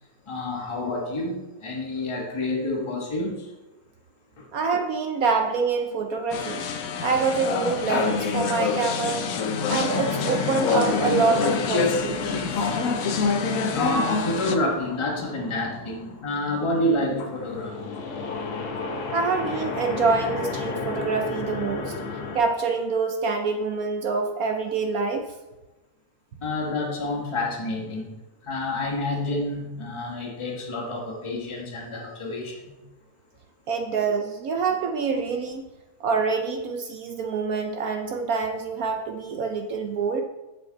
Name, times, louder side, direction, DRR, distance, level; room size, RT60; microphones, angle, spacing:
voice 1, 0.3-3.5 4.4-4.5 13.7-17.9 26.4-28.1 28.4-32.8, left 1 dB, 20° left, -1 dB, 1.2 m, -28 dB
voice 2, 4.5-6.6 7.0-9.3 9.7-12.7 19.1-22.0 22.3-25.3 33.7-35.6 36.0-40.2, right 4 dB, 65° right, 4 dB, 0.9 m, -26 dB
sound 1, 6.3-14.6, left 5 dB, 65° left, 0.9 m, -26 dB
sound 2, 9.9-22.4, left 3 dB, 80° left, 1.8 m, -33 dB
8.4 x 7.0 x 3.9 m, 1.1 s
omnidirectional pair, 2.1 m